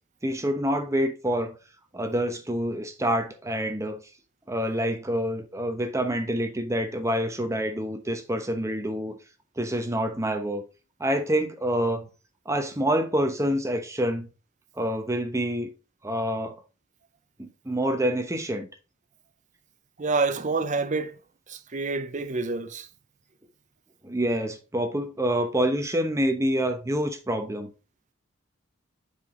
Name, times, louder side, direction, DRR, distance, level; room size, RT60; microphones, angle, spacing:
voice 1, 0.2-1.6 1.9-4.0 4.5-9.1 9.6-10.6 11.0-12.1 12.5-14.3 14.8-15.7 16.0-16.6 17.4-18.7 24.0-27.7, equal, 15° right, 1.0 m, -27 dB
voice 2, 20.0-21.1 21.5-22.9, right 3 dB, 40° right, 0.7 m, -27 dB
6.9 x 4.9 x 3.8 m
head